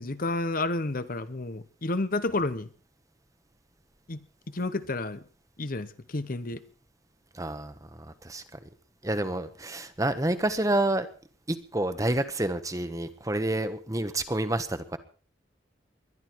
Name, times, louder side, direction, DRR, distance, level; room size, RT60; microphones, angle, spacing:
voice 1, 0.0-2.7 4.1-4.2 4.5-5.2 5.6-6.6, left 2 dB, 45° left, 13 dB, 0.9 m, -30 dB
voice 2, 7.3-8.6 9.0-11.1 11.5-15.0, right 1 dB, 15° right, 10 dB, 1.2 m, -29 dB
22.0 x 11.5 x 4.6 m, 0.41 s
head